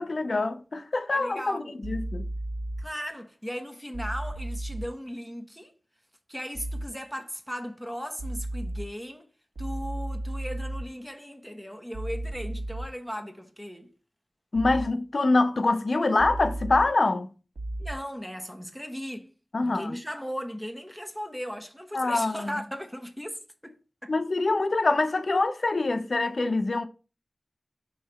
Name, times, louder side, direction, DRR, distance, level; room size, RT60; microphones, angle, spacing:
voice 1, 0.0-2.3 14.5-17.3 19.5-20.0 21.9-22.6 24.1-26.9, left 3 dB, 55° left, 0.6 m, -25 dB
voice 2, 1.1-1.7 2.8-5.7 6.3-9.3 9.6-13.9 17.8-19.3 19.6-23.8 24.0-24.1, equal, ahead, 1.1 m, -37 dB
sound 1, 1.8-2.8 3.9-4.9 6.5-6.9 8.2-8.8 9.6-10.8 11.9-12.9 14.5-14.9 16.2-16.8 17.6-17.9, right 1 dB, 60° right, 1.6 m, -33 dB
5.6 x 3.3 x 5.6 m
wide cardioid pair, 75°, 0 cm